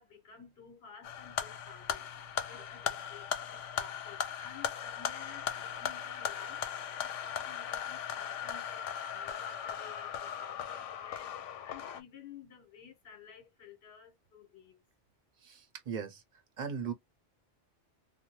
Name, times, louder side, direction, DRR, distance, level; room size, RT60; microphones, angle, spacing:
voice 1, 0.0-14.8, left 6 dB, 65° left, 1.4 m, -54 dB
sound 1, 1.0-12.0, left 9 dB, 90° left, 0.9 m, -38 dB
voice 2, 15.4-16.2 16.6-16.9, right 6 dB, 50° right, 0.7 m, -38 dB
2.6 x 2.1 x 2.9 m
omnidirectional pair, 1.2 m